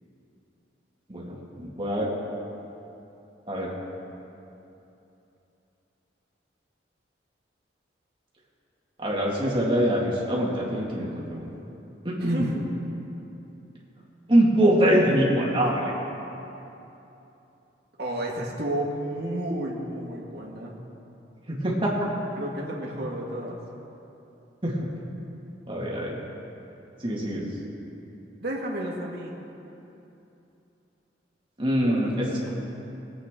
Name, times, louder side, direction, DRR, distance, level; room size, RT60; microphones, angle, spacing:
voice 1, 1.1-2.1 3.5-3.7 9.0-11.5 12.0-12.5 14.3-15.9 21.5-22.1 24.6-24.8 25.7-26.2 27.0-27.5 31.6-32.5, equal, 25° right, -4 dB, 2.0 m, -24 dB
voice 2, 12.2-12.7 18.0-20.8 22.4-23.6 28.4-29.4 31.8-32.1 32.4-32.5, right 1 dB, 55° right, -2 dB, 1.9 m, -32 dB
20.5 x 8.4 x 3.7 m, 2.9 s
head